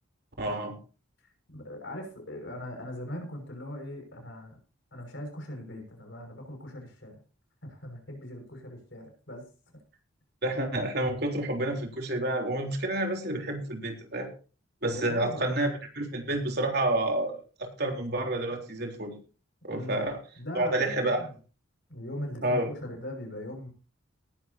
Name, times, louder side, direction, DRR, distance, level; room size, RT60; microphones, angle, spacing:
voice 1, 0.4-0.7 10.4-14.3 14.8-19.1 19.6-20.2 20.5-21.3 22.4-22.7, right 1 dB, 50° right, 3 dB, 3.7 m, -29 dB
voice 2, 1.2-4.6 4.9-7.2 7.6-9.5 14.8-15.5 19.7-20.1 20.4-21.3 21.9-23.7, left 1 dB, 60° left, 3 dB, 6.0 m, -40 dB
19.5 x 11.5 x 2.9 m, 0.35 s
head